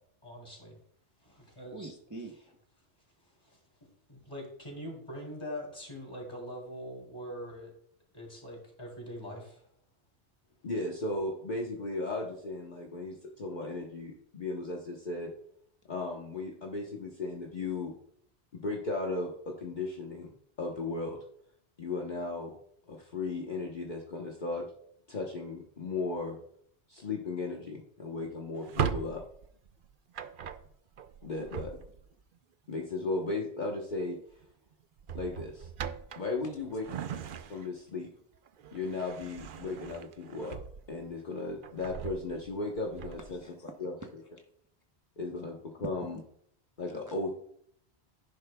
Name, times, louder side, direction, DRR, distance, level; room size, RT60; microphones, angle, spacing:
voice 1, 0.2-0.8 1.2-1.9 3.4-3.6 4.1-7.7 8.1-9.6, equal, 25° left, -1 dB, 3.4 m, -43 dB
voice 2, 1.7-2.4 43.3-43.7 44.0-44.5 45.8-46.2 46.9-47.1, right 2 dB, 20° right, 2 dB, 0.8 m, -45 dB
voice 3, 10.6-15.3 15.9-17.9 18.5-20.3 20.6-21.2 21.8-22.5 22.9-24.7 25.1-26.4 26.9-29.2 31.2-31.8 32.7-34.2 35.1-35.7 36.2-36.8 37.5-38.1 38.7-40.6 40.9-43.4 43.8-43.9 45.2-46.2 46.8-47.3, left 3 dB, 45° left, -1 dB, 1.2 m, -36 dB
Drawer open or close, 28.5-32.2 33.7-34.0 34.3-34.5 35.0-37.9 38.3-41.1 41.5-43.4, right 7 dB, 55° right, 0.7 m, -39 dB
10.5 x 10.5 x 2.3 m, 0.66 s
omnidirectional pair, 1.1 m